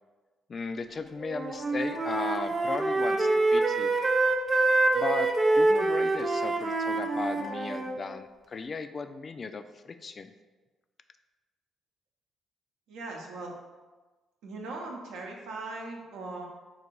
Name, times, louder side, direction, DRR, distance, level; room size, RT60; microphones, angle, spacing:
voice 1, 0.5-3.9 4.9-10.3, left 4 dB, 45° left, 9 dB, 0.3 m, -36 dB
Wind instrument woodwind instrument, 1.2-7.9, right 2 dB, 40° right, 0.7 m, -26 dB
voice 2, 12.9-13.5 14.4-16.4, right 2 dB, 75° right, 0 dB, 0.7 m, -39 dB
4.0 x 2.6 x 4.5 m, 1.3 s
hypercardioid pair, 50°, 0 cm